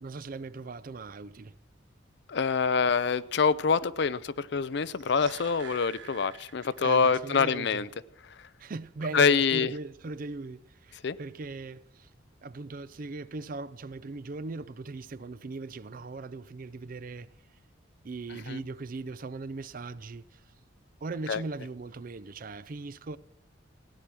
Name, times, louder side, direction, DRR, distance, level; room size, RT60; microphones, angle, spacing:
voice 1, 0.0-1.6 6.6-7.8 8.6-12.1 12.4-17.3 18.0-20.4 21.0-23.2, right 3 dB, 45° right, 0.5 m, -39 dB
voice 2, 2.3-7.9 9.1-9.7 11.0-11.2 18.5-18.6 21.3-21.4, left 5 dB, 60° left, 0.5 m, -25 dB
sound 1, 4.8-7.2 7.5-7.6, right 8 dB, 80° right, 1.3 m, -48 dB
16.5 x 10.0 x 6.1 m
head